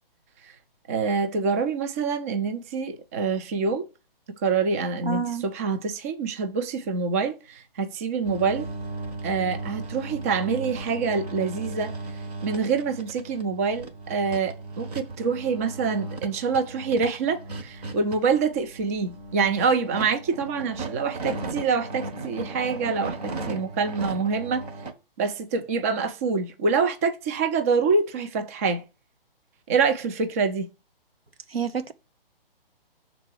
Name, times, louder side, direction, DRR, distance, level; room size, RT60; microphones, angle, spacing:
voice 1, 0.9-3.8 4.4-8.7 9.2-11.9 12.4-24.7 25.2-28.8 29.7-30.7, right 5 dB, 15° right, 0.4 m, -26 dB
voice 2, 5.0-5.4 31.5-31.9, right 7 dB, 85° right, 1.1 m, -28 dB
sound 1, 8.2-24.9, right 2 dB, 40° right, 1.4 m, -36 dB
6.5 x 3.9 x 6.3 m
hypercardioid pair, 145°, 30 cm